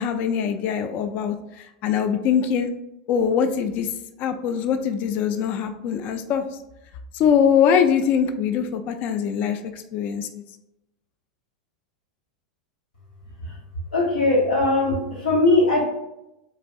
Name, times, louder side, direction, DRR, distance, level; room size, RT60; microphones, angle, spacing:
voice 1, 0.0-2.7 3.1-3.9 4.2-6.4 7.1-10.4, left 7 dB, 45° left, 8 dB, 0.3 m, -22 dB
voice 2, 13.9-15.8, left 2 dB, 80° left, -3 dB, 1.4 m, -20 dB
4.0 x 2.5 x 2.2 m, 0.89 s
hypercardioid pair, 95°, 4 cm